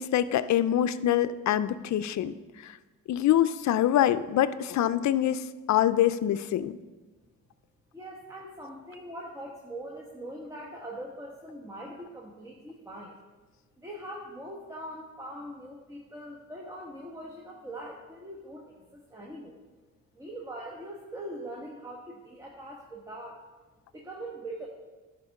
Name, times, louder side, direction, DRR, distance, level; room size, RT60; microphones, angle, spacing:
voice 1, 0.0-2.3 2.6-2.7 3.1-6.7, left 11 dB, 60° left, 13 dB, 0.5 m, -25 dB
voice 2, 7.9-13.1 13.8-19.6 20.1-23.4 23.9-24.7, right 1 dB, 10° right, -1 dB, 1.1 m, -42 dB
10.5 x 5.1 x 5.3 m, 1.3 s
cardioid pair, 95°, 31 cm